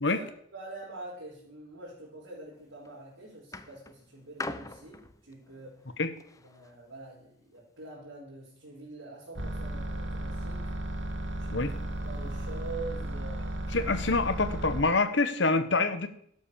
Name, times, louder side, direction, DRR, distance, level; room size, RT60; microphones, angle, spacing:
voice 1, 0.1-5.8 6.4-10.7 11.4-11.7 12.0-13.9, right 2 dB, 90° right, -7 dB, 5.0 m, -45 dB
sound 1, 2.5-2.9 3.5-6.8 7.6-7.7, left 2 dB, 15° left, 0.6 m, -42 dB
sound 2, 9.4-14.8, right 1 dB, 70° right, 1.8 m, -34 dB
voice 2, 13.7-16.1, left 3 dB, 65° left, 10 dB, 1.2 m, -26 dB
12.0 x 8.3 x 6.9 m, 0.66 s
head